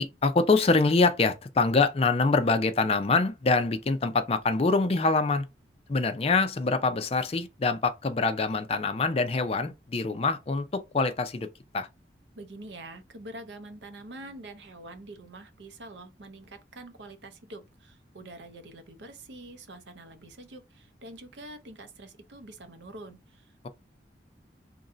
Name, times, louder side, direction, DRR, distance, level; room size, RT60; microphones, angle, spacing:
voice 1, 0.0-5.5 5.9-11.9, left 3 dB, 35° left, 0.4 m, -25 dB
voice 2, 12.4-23.7, right 2 dB, 80° right, 0.7 m, -45 dB
3.0 x 2.6 x 3.8 m
head